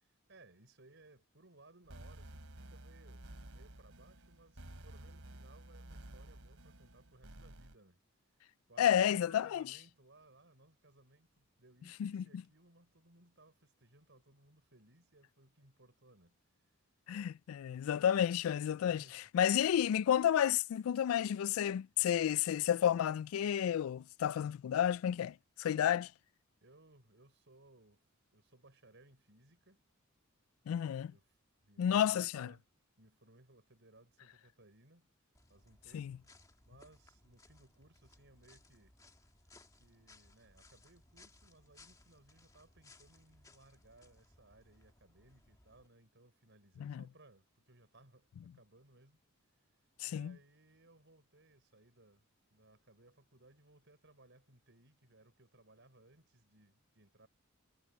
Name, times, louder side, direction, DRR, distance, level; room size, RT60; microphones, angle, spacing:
voice 1, 0.1-8.0 8.7-16.4 18.8-19.3 25.7-26.0 26.6-28.1 28.3-29.8 30.7-32.6 33.0-35.1 35.5-36.3 36.6-39.0 39.8-49.2 50.1-52.2 52.5-57.3, right 2 dB, 60° right, 5.8 m, -63 dB
sound 1, 1.8-7.8, right 1 dB, 90° right, 2.9 m, -52 dB
voice 2, 8.8-9.6 12.0-12.2 17.1-26.1 30.7-31.1 31.8-32.5 35.9-36.1 46.8-47.0 50.0-50.4, left 9 dB, 80° left, 0.3 m, -31 dB
sound 2, 35.3-45.9, left 2 dB, 15° left, 1.8 m, -64 dB
head